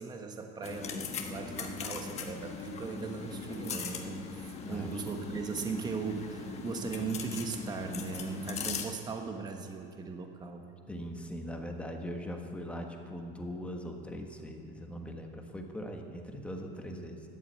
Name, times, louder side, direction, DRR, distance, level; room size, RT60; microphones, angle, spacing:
voice 1, 0.0-10.7, right 5 dB, 20° right, 3 dB, 1.2 m, -38 dB
sound 1, 0.6-8.9, left 5 dB, 30° left, 1.3 m, -39 dB
voice 2, 4.6-5.0 10.9-17.3, equal, 5° left, 3 dB, 1.4 m, -41 dB
14.5 x 11.0 x 8.3 m, 2.6 s
cardioid pair, 160°, 21 cm